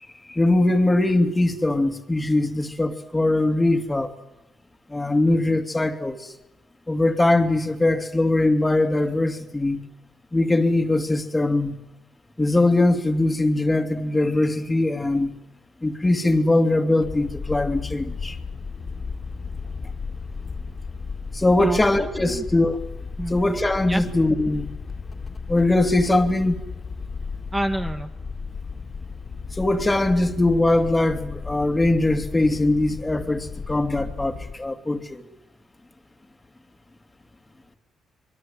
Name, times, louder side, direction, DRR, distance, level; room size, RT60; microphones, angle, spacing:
voice 1, 0.3-4.1 4.9-6.3 6.9-9.8 10.3-11.8 12.4-15.3 15.8-18.4 21.3-22.8 23.3-24.7 25.5-26.6 29.5-35.3, left 2 dB, 15° left, 8 dB, 2.5 m, -21 dB
sound 1, 17.0-34.5, left 4 dB, 40° left, 2.5 m, -34 dB
voice 2, 21.6-22.4 23.2-23.3 23.9-24.0 27.5-28.1, right 1 dB, 10° right, 6 dB, 1.6 m, -28 dB
26.5 x 22.5 x 7.8 m, 0.97 s
cardioid pair, 90°, 0 cm